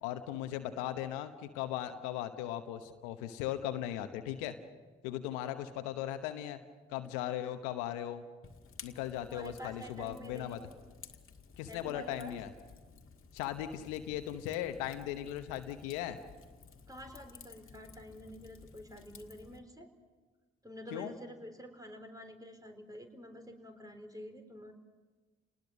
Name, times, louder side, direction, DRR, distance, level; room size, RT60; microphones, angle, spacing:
voice 1, 0.0-4.6 5.0-6.6 6.9-8.2 8.8-10.6 11.6-12.5 13.3-16.2 20.9-21.1, left 12 dB, 85° left, 9 dB, 1.1 m, -38 dB
Fire, 8.4-19.6, left 5 dB, 45° left, 1.8 m, -55 dB
voice 2, 9.2-10.6 11.7-12.4 16.9-19.9 20.6-24.7, equal, 10° right, 6 dB, 4.2 m, -48 dB
28.0 x 20.0 x 6.4 m, 1.3 s
hypercardioid pair, 40°, 29 cm